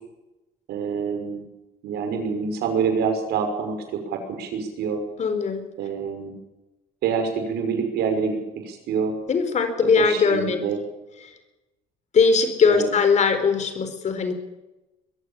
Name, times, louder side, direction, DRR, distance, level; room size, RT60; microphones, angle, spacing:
voice 1, 0.7-1.4 1.8-3.7 4.1-5.0 5.8-6.3 7.0-8.4 8.6-9.1 9.8-10.8 12.7-12.9, right 6 dB, 75° right, 5 dB, 5.8 m, -26 dB
voice 2, 5.2-5.6 9.3-10.6 11.2-11.3 12.1-14.3, left 5 dB, 45° left, 9 dB, 4.2 m, -20 dB
22.5 x 15.0 x 8.6 m, 1.0 s
cardioid pair, 110°, 17 cm